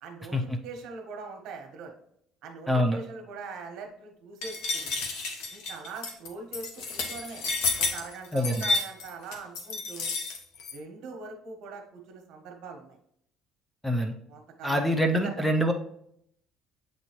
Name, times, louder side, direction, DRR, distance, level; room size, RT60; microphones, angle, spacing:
voice 1, 0.0-1.9 2.4-5.0 5.5-7.4 7.8-10.1 10.7-12.9 14.3-15.3, right 4 dB, 65° right, 3 dB, 1.3 m, -42 dB
voice 2, 2.7-3.0 8.3-8.7 13.8-14.1 14.6-15.7, equal, 5° left, 5 dB, 0.5 m, -25 dB
sound 1, 4.4-10.7, left 3 dB, 80° left, 1.1 m, -31 dB
7.8 x 4.2 x 3.0 m, 0.71 s
cardioid pair, 160°, 0 cm